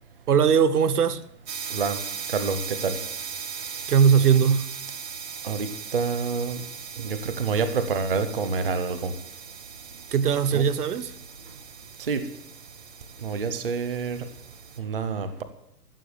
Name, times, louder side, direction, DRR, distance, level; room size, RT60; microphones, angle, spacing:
voice 1, 0.3-1.3 3.9-4.7 10.1-11.1, right 7 dB, 65° right, 1.1 m, -20 dB
sound 1, 1.5-14.8, right 7 dB, 80° right, 2.0 m, -39 dB
voice 2, 2.3-3.0 5.4-6.6 7.0-9.1 10.5-10.6 12.1-12.2 13.2-14.2 14.8-15.4, right 5 dB, 35° right, 0.8 m, -27 dB
14.5 x 7.1 x 8.5 m
hypercardioid pair, 180°, 49 cm